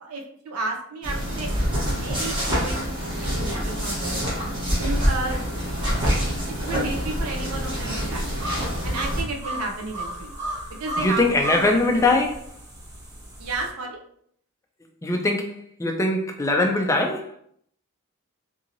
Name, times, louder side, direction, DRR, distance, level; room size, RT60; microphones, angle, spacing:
voice 1, 0.0-1.5 1.8-4.3 4.8-5.4 6.1-6.4 6.7-8.2 8.8-10.4 10.8-12.2 13.4-14.0, right 3 dB, 80° right, 0.5 m, -32 dB
sound 1, 1.0-9.2, equal, 20° right, 1.0 m, -26 dB
sound 2, 4.8-13.7, right 1 dB, 55° right, 1.0 m, -36 dB
voice 2, 11.0-12.3 15.0-15.5 15.8-17.3, left 2 dB, 15° left, 0.3 m, -21 dB
2.8 x 2.6 x 2.6 m
head